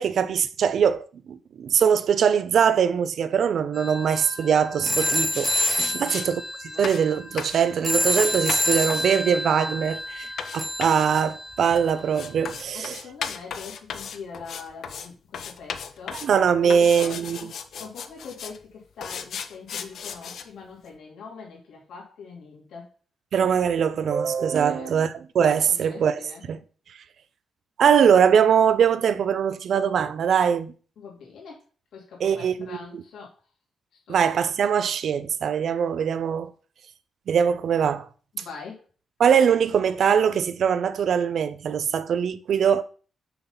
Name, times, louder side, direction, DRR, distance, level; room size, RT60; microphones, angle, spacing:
voice 1, 0.0-6.4 6.8-13.0 16.2-17.5 23.3-26.2 26.5-26.6 27.8-30.7 32.2-33.0 34.1-36.5 37.3-38.1 38.4-38.5 39.2-42.8, right 7 dB, 55° right, 0.6 m, -22 dB
sound 1, 3.7-11.8, left 1 dB, ahead, 0.9 m, -28 dB
sound 2, 5.3-6.3 6.8-7.1 7.4-7.6 8.2-15.1 15.3-16.3 16.7-18.6 19.0-20.4, left 7 dB, 60° left, 0.7 m, -36 dB
voice 2, 6.0-6.9 10.3-10.4 12.7-16.3 16.6-17.5 17.8-22.9 24.6-24.9 25.7-26.4 31.0-31.6 31.9-33.3 34.1-34.2 38.3-38.8, left 5 dB, 80° left, 2.9 m, -42 dB
6.7 x 5.8 x 4.0 m
wide cardioid pair, 165°, 0 cm